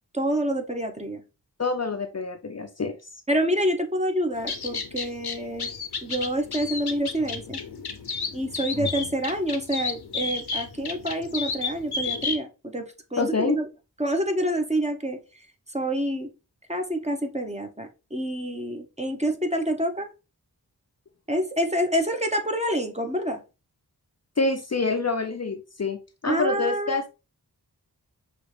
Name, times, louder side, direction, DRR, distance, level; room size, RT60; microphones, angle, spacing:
voice 1, 0.1-1.2 3.3-5.7 6.0-7.6 8.3-12.5 12.7-13.7 14.0-15.2 15.7-16.3 16.7-20.1 21.3-23.4 26.3-27.1, right 1 dB, 15° right, 0.9 m, -27 dB
voice 2, 1.6-3.0 13.2-13.6 24.4-27.1, left 3 dB, 40° left, 0.6 m, -27 dB
sound 1, 4.3-12.4, left 4 dB, 75° left, 0.8 m, -32 dB
6.0 x 2.4 x 3.3 m
wide cardioid pair, 45°, 39 cm